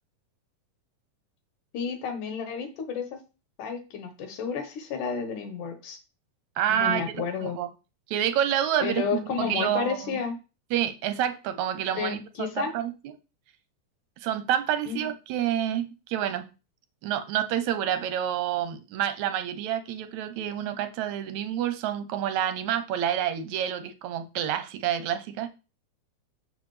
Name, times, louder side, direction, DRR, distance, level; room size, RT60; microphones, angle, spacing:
voice 1, 1.7-3.2 3.6-6.0 6.7-7.6 8.8-10.3 12.0-12.7 14.9-15.1, left 6 dB, 80° left, 6 dB, 2.8 m, -31 dB
voice 2, 6.6-7.7 8.1-10.2 10.7-12.2 12.6-12.9 14.2-16.5 17.0-25.5, right 10 dB, 75° right, 10 dB, 2.0 m, -28 dB
7.2 x 6.5 x 3.2 m, 0.31 s
omnidirectional pair, 3.6 m